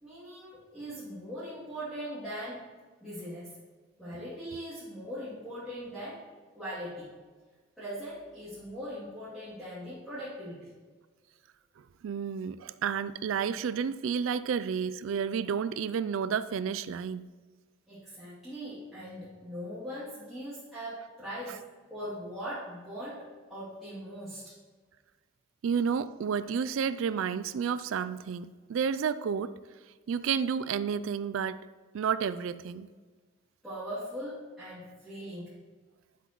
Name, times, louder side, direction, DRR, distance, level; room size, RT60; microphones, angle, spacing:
voice 1, 0.0-2.6 3.0-3.6 4.0-6.2 6.5-7.1 7.8-10.7 17.9-21.6 21.9-24.5 33.6-35.6, equal, ahead, -14 dB, 2.6 m, -40 dB
voice 2, 12.0-17.3 25.6-29.5 30.1-31.6 31.9-32.9, right 7 dB, 75° right, 14 dB, 0.3 m, -31 dB
9.4 x 7.8 x 3.0 m, 1.4 s
head